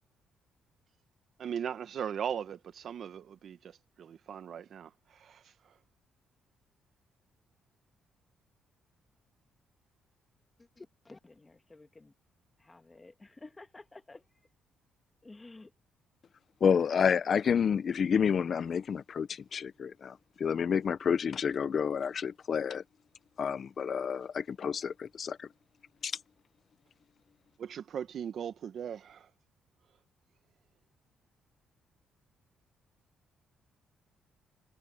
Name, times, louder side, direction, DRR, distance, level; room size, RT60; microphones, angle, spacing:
voice 1, 1.4-5.8 27.6-29.3, right 8 dB, 60° right, 1.7 m, -39 dB
voice 2, 10.8-12.1 12.7-14.2 15.2-15.7, left 3 dB, 20° left, 2.0 m, -52 dB
voice 3, 16.6-22.8 23.4-25.5 26.0-26.1, left 7 dB, 50° left, 0.6 m, -29 dB
cardioid pair, 90°, 0 cm